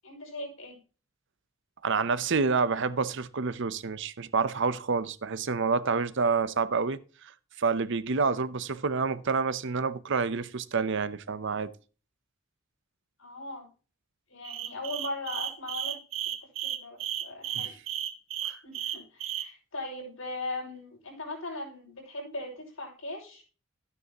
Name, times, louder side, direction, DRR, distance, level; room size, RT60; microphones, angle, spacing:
voice 1, 0.0-0.8 13.2-13.7 14.3-16.0 16.6-17.7 18.6-23.4, left 2 dB, 80° left, 5.8 m, -39 dB
voice 2, 1.8-7.3 7.6-11.7 18.4-18.6, right 4 dB, 65° right, 0.7 m, -28 dB
sound 1, 14.4-19.5, right 11 dB, 90° right, 1.2 m, -33 dB
13.0 x 9.6 x 2.9 m
head